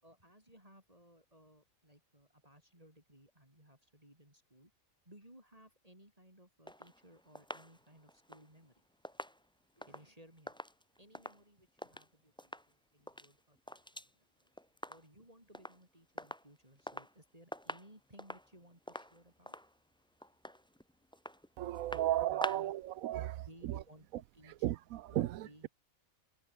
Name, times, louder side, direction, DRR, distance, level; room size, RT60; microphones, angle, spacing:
voice 1, 0.0-4.7 5.0-8.8 9.7-10.6 11.0-14.6 14.9-19.6 21.9-22.7 23.1-24.7 25.1-25.7, right 1 dB, 25° right, 7.6 m, -60 dB
sound 1, 6.7-12.1 12.4-12.7 13.0-14.1 14.4-15.2 15.5-15.8 16.2-17.2 17.5-22.8 23.1-23.2, equal, 5° left, 1.9 m, -47 dB
voice 2, 21.6-23.3 23.7-23.8 24.6-25.3, right 13 dB, 80° right, 1.0 m, -34 dB
omnidirectional pair, 1.5 m